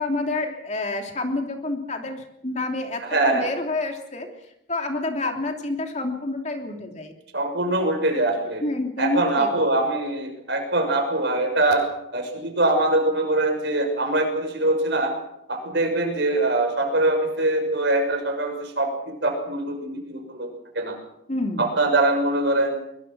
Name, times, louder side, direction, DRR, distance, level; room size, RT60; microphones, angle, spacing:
voice 1, 0.0-4.3 4.7-7.1 7.8-7.9 8.6-9.5 21.3-21.7, left 2 dB, 35° left, 3 dB, 3.1 m, -28 dB
voice 2, 3.0-3.5 7.3-8.6 9.0-11.8 12.1-15.1 15.5-20.5 20.7-21.0 21.6-22.8, right 2 dB, 55° right, 4 dB, 6.2 m, -23 dB
23.5 x 22.5 x 6.2 m, 0.80 s
head